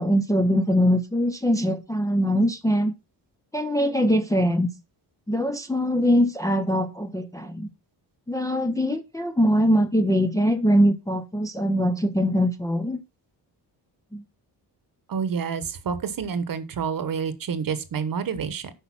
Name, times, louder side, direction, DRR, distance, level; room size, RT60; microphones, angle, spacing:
voice 1, 0.0-2.9 3.5-4.7 5.3-7.7 8.3-13.0 14.1-14.2, equal, 10° left, 0.6 m, -22 dB
voice 2, 15.1-18.7, right 6 dB, 50° right, 1.1 m, -28 dB
8.3 x 5.5 x 5.9 m
wide cardioid pair, 180°, 44 cm